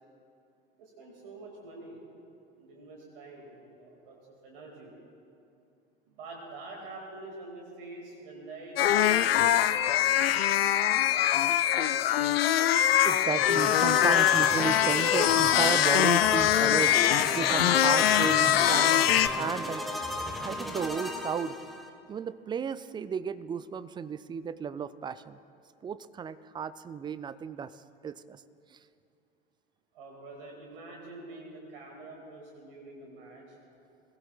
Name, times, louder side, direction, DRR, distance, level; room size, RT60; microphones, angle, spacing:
voice 1, 0.7-2.0 2.5-4.2 4.4-4.9 6.1-12.2 29.9-33.6, right 2 dB, 65° right, -1 dB, 2.3 m, -46 dB
sound 1, 8.8-19.3, left 11 dB, 75° left, 0.5 m, -23 dB
voice 2, 13.0-17.0 17.3-19.9 20.4-21.6 22.1-25.4 25.8-28.4 28.7-28.8, right 6 dB, 15° right, 15 dB, 0.3 m, -34 dB
sound 2, 13.4-21.9, left 1 dB, ahead, 1.3 m, -34 dB
22.0 x 16.0 x 2.4 m, 2.6 s
figure-of-eight pair, 70°, 30 cm